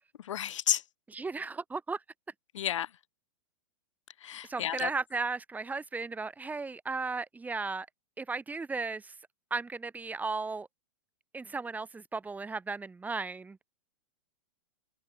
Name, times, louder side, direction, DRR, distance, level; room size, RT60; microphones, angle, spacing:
voice 1, 0.3-0.8 2.5-2.9 4.2-4.9, left 10 dB, 75° left, 3.8 m, -31 dB
voice 2, 1.1-2.0 4.4-7.9 8.2-9.1 9.5-10.7 11.3-13.6, right 4 dB, 10° right, 5.1 m, -35 dB
hypercardioid pair, 130°, 16 cm